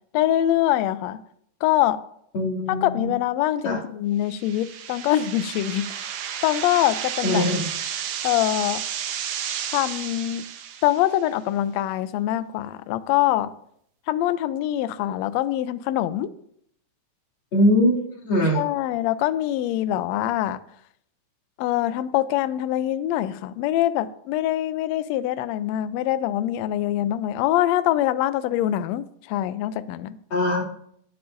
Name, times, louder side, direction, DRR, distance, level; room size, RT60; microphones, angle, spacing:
voice 1, 0.1-1.2 1.6-2.0 2.7-5.9 6.4-7.4 8.2-8.8 9.7-10.4 10.8-13.5 14.1-16.3 18.5-20.6 21.6-30.2, left 13 dB, 80° left, 14 dB, 1.6 m, -24 dB
voice 2, 2.3-3.1 3.6-3.8 7.2-7.6 17.5-18.0 18.2-18.6 30.3-30.6, left 1 dB, 45° left, -4 dB, 3.2 m, -21 dB
sound 1, 4.3-11.2, right 9 dB, 90° right, 2.4 m, -32 dB
18.0 x 8.0 x 2.6 m, 0.70 s
omnidirectional pair, 3.5 m